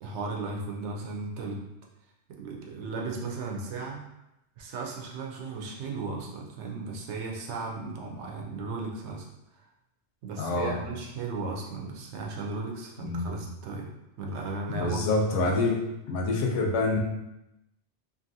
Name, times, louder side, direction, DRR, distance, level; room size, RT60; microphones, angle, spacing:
voice 1, 0.0-1.6 2.3-4.0 4.6-9.3 10.2-13.9 14.2-15.1 15.4-15.5, right 3 dB, 75° right, 0 dB, 0.8 m, -35 dB
voice 2, 10.4-10.8 13.0-13.3 14.7-15.8 16.1-17.0, left 3 dB, 80° left, 0 dB, 0.9 m, -26 dB
2.6 x 2.5 x 2.6 m, 0.91 s
omnidirectional pair, 1.2 m